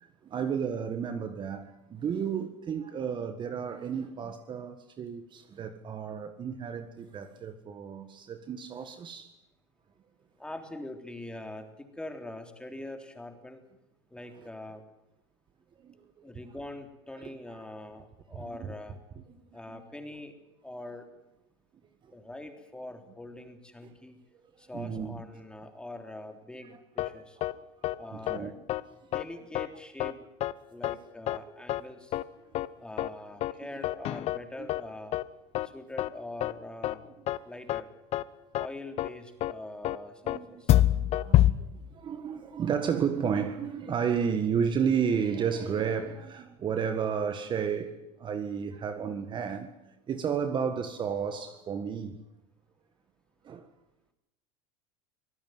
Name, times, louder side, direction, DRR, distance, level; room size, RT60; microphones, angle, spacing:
voice 1, 0.0-9.3 15.8-16.3 17.2-17.6 18.3-18.7 19.3-19.4 19.7-19.8 23.8-23.9 24.7-25.2 26.6-26.8 27.5-27.6 28.1-28.5 34.6-34.7 40.2-49.7 50.1-52.2 53.4-53.7, right 7 dB, 30° right, 1.7 m, -32 dB
voice 2, 10.4-13.6 14.1-14.8 16.2-19.0 19.5-20.4 20.6-21.1 22.1-24.2 24.6-27.4 28.0-28.6 29.1-30.2 30.7-32.2 32.8-35.2 35.6-37.1 37.4-37.9 38.5-40.8, left 1 dB, 5° left, 3.6 m, -43 dB
sound 1, 27.0-27.1 27.4-27.5 27.8-28.0 28.3-28.4 28.7-28.8 29.1-29.2 29.6-29.7 30.0-30.1 30.4-30.5 30.8-30.9 31.3-31.4 31.7-31.8 32.1-32.2 32.5-32.7 33.0-33.1 33.4-33.5 33.8-34.4 34.7-34.8 35.1-35.2 35.5-35.7 36.0-36.1 36.4-36.5 36.8-36.9 37.3-37.4 37.7-37.8 38.1-38.2 38.5-38.7 39.0-39.1 39.4-39.5 39.8-40.0 40.3-40.4 40.7-41.5, left 14 dB, 45° left, 1.0 m, -26 dB
25.0 x 17.5 x 9.4 m
supercardioid pair, 120°, 15 cm